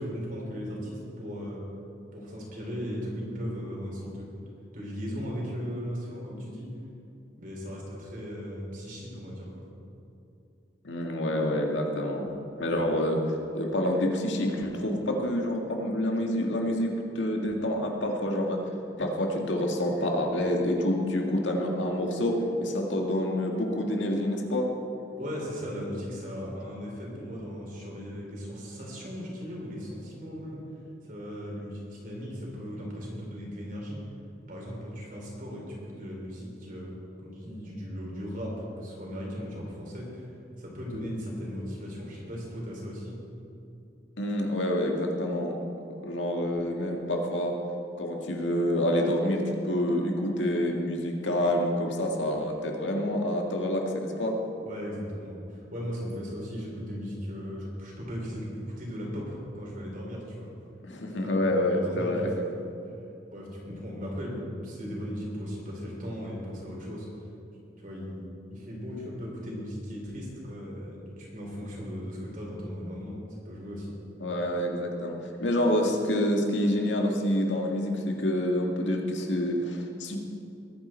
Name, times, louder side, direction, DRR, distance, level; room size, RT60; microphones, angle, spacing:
voice 1, 0.0-1.6 2.1-4.3 4.7-6.7 7.4-9.7 25.2-30.6 31.0-34.0 34.5-36.9 37.2-43.2 54.6-60.5 61.2-62.3 63.3-67.1 67.8-73.2 73.4-73.9, equal, 45° right, -3 dB, 3.9 m, -37 dB
voice 2, 10.8-13.2 13.5-16.9 17.2-18.6 19.0-24.7 44.2-45.6 46.0-47.6 48.0-54.4 60.8-62.4 74.2-80.2, left 1 dB, 80° left, 1 dB, 1.9 m, -27 dB
21.5 x 9.5 x 4.5 m, 2.7 s
head